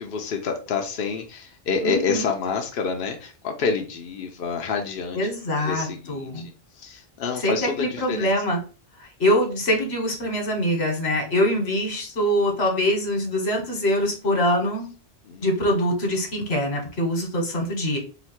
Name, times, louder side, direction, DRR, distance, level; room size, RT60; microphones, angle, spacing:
voice 1, 0.0-6.4 6.8-8.3 15.3-15.5, left 5 dB, 65° left, 2 dB, 0.8 m, -28 dB
voice 2, 1.8-2.3 5.1-6.4 7.4-8.6 9.2-14.9 15.4-18.0, equal, 90° left, 2 dB, 1.4 m, -24 dB
3.9 x 2.1 x 4.3 m, 0.36 s
omnidirectional pair, 1.0 m